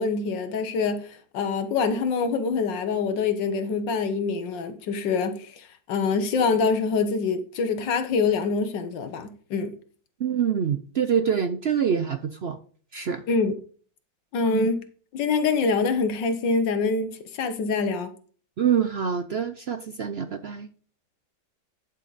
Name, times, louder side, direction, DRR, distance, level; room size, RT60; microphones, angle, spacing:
voice 1, 0.0-9.8 13.3-13.5 14.3-14.8 15.1-18.1, left 4 dB, 90° left, 1.7 m, -25 dB
voice 2, 10.2-12.6 12.9-13.2 14.5-14.7 18.6-20.7, right 7 dB, 70° right, 0.6 m, -25 dB
11.0 x 5.6 x 4.0 m
omnidirectional pair, 1.9 m